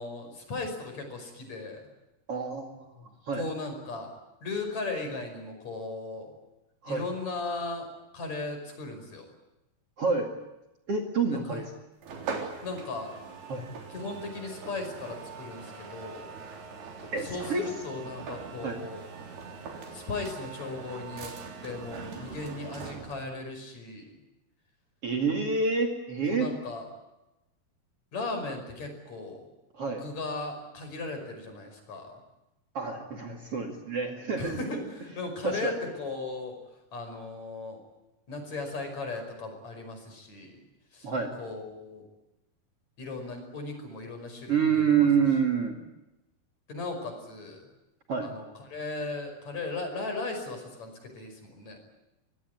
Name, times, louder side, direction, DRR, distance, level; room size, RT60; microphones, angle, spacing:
voice 1, 0.0-1.9 3.3-4.1 4.4-6.3 6.9-7.9 8.1-9.2 11.3-11.7 12.6-13.1 13.9-16.3 17.2-19.1 19.9-21.3 21.6-24.2 26.3-26.9 28.1-29.5 30.0-32.2 34.4-36.6 36.9-37.8 38.3-40.6 40.9-41.1 41.4-42.0 43.0-45.1 46.7-47.6 48.2-51.8, left 3 dB, 45° left, 5 dB, 6.5 m, -37 dB
voice 2, 2.3-2.8 3.3-3.4 6.8-7.0 10.0-10.3 10.9-11.6 13.5-13.6 17.1-17.7 18.6-18.8 25.0-26.5 29.8-30.0 32.7-34.6 35.4-35.7 41.0-41.3 44.5-45.8 48.1-48.3, right 5 dB, 45° right, 3 dB, 2.9 m, -27 dB
sound 1, 12.0-23.3, right 5 dB, 90° right, 5.7 m, -42 dB
25.0 x 20.5 x 9.6 m, 0.97 s
omnidirectional pair, 4.4 m